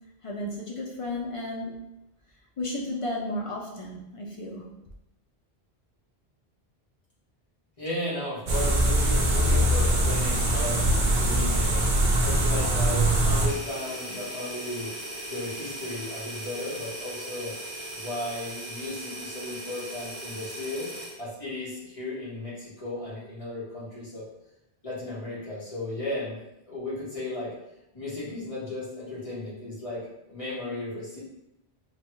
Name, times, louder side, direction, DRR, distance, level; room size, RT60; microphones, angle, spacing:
voice 1, 0.2-1.8 2.6-4.7, left 1 dB, 55° left, -2 dB, 0.3 m, -33 dB
voice 2, 7.8-11.9 12.2-14.9 15.3-17.5 18.0-20.9 21.2-24.2 24.8-26.4 26.7-27.5 27.9-31.2, left 1 dB, 35° left, -9 dB, 1.2 m, -35 dB
sound 1, 8.5-13.5, right 1 dB, 55° right, 0.7 m, -22 dB
sound 2, 13.5-21.2, right 1 dB, 5° left, 0.8 m, -38 dB
3.3 x 2.3 x 3.0 m, 0.87 s
omnidirectional pair, 1.1 m